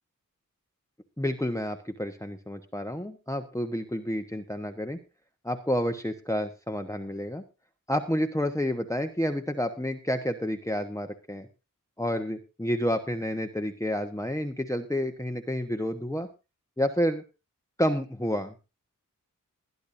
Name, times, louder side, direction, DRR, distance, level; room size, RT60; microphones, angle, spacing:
voice 1, 1.2-5.0 5.4-7.4 7.9-11.5 12.0-16.3 16.8-17.2 17.8-18.5, equal, 10° left, 5 dB, 1.2 m, -29 dB
20.5 x 10.5 x 2.7 m, 0.28 s
wide cardioid pair, 65°, 33 cm